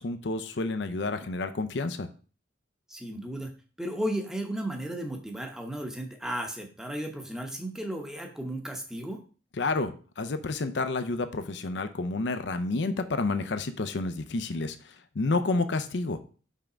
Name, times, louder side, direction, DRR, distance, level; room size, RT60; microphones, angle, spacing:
voice 1, 0.0-2.1 9.6-16.2, left 3 dB, 65° left, 10 dB, 0.6 m, -30 dB
voice 2, 2.9-3.5 3.8-9.2, right 1 dB, 5° right, 3 dB, 0.8 m, -34 dB
5.6 x 3.5 x 5.0 m, 0.38 s
head